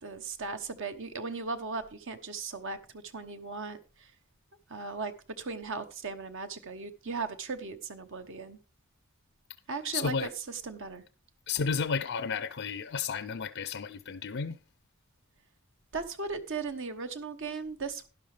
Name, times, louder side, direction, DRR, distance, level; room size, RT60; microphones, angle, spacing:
voice 1, 0.0-4.1 4.7-8.6 9.7-11.0 15.9-18.1, right 4 dB, 60° right, 1.1 m, -37 dB
voice 2, 9.9-10.3 11.5-14.6, left 5 dB, 55° left, 0.5 m, -32 dB
11.5 x 11.0 x 3.4 m
head